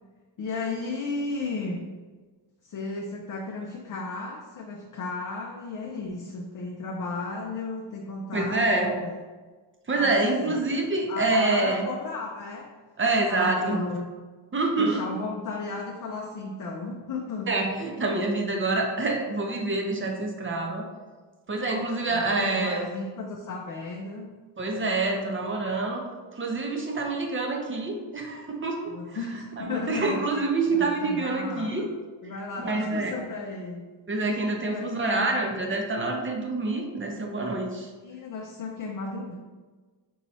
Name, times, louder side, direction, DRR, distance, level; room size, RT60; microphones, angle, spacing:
voice 1, 0.4-1.9 2.6-9.2 9.9-10.6 11.1-12.7 13.3-14.1 14.8-17.5 22.1-24.4 28.9-30.3 30.7-31.7 32.2-33.9 34.7-35.3 38.0-39.3, left 3 dB, 45° left, 0 dB, 0.4 m, -34 dB
voice 2, 8.3-8.9 9.9-11.8 13.0-13.8 14.5-15.0 17.5-20.8 21.5-22.8 24.6-26.0 26.3-29.2 29.6-31.9 32.6-33.1 34.1-37.9, right 3 dB, 25° right, 2 dB, 0.6 m, -26 dB
5.5 x 3.0 x 2.7 m, 1.4 s
wide cardioid pair, 150°, 47 cm